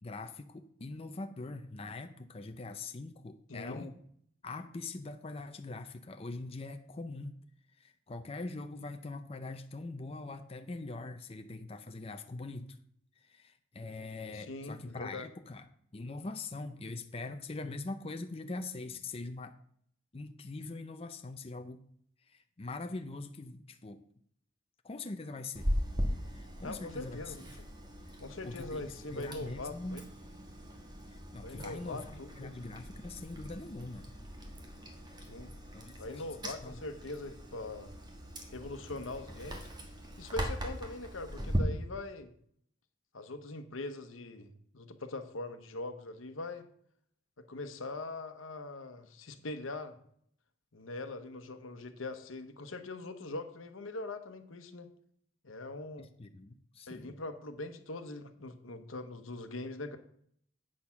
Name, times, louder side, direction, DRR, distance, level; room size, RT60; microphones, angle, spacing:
voice 1, 0.0-3.9 4.4-7.4 7.8-12.8 13.2-15.7 15.9-19.5 20.1-21.8 22.3-24.0 24.8-25.7 26.3-27.3 28.1-28.2 28.4-30.1 31.1-34.1 35.7-36.8 56.0-57.2, left 3 dB, 30° left, 7 dB, 0.5 m, -43 dB
voice 2, 3.5-3.9 14.3-15.3 26.6-27.5 28.2-30.0 31.4-32.5 35.3-35.5 36.0-37.9 38.5-39.7 40.2-42.3 43.1-44.5 44.7-46.7 47.4-50.0 50.7-54.9 55.4-56.1 56.9-60.0, left 2 dB, 90° left, 8 dB, 1.0 m, -42 dB
Chewing mastication, 25.5-41.6, equal, 20° right, 1.5 m, -40 dB
8.6 x 6.5 x 5.8 m, 0.65 s
head